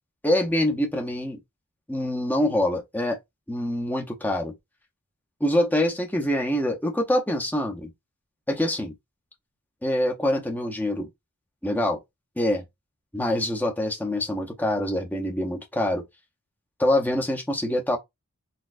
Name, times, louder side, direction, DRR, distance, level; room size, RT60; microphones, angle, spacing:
voice 1, 0.2-1.4 1.9-3.2 3.5-4.5 5.4-7.9 8.5-8.9 9.8-11.1 11.6-12.0 12.4-12.6 13.1-16.0 16.8-18.0, left 1 dB, 10° left, 0.7 m, -25 dB
4.1 x 2.2 x 2.5 m
head